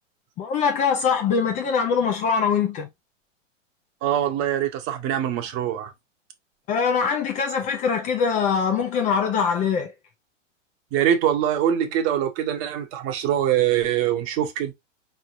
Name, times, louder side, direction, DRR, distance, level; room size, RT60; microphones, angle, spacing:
voice 1, 0.4-2.9 6.7-9.9, left 6 dB, 20° left, 0.5 m, -23 dB
voice 2, 4.0-5.9 10.9-14.7, right 10 dB, 35° right, 1.1 m, -23 dB
4.3 x 3.3 x 2.5 m
hypercardioid pair, 115°, 38 cm